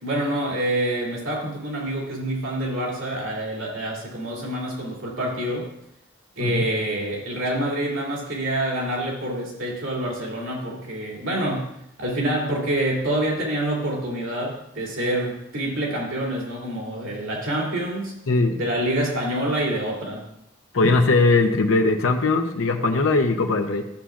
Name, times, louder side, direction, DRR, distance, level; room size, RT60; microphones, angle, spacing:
voice 1, 0.0-5.7 6.4-11.7 12.0-18.1 18.5-20.2, right 1 dB, 85° right, -3 dB, 2.7 m, -27 dB
voice 2, 18.3-18.6 20.7-23.8, left 3 dB, 85° left, 3 dB, 0.8 m, -20 dB
13.0 x 7.1 x 2.5 m, 0.78 s
head